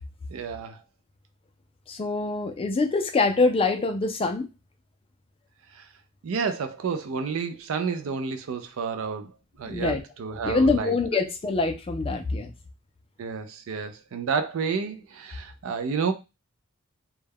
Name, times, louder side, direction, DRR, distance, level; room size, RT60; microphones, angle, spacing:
voice 1, 0.3-0.8 5.7-5.8 6.2-9.3 9.6-10.9 13.2-16.1, right 5 dB, 65° right, 0.4 m, -30 dB
voice 2, 1.9-4.5 9.7-10.0 10.4-12.5, left 3 dB, 25° left, 0.3 m, -24 dB
2.2 x 2.2 x 3.4 m
head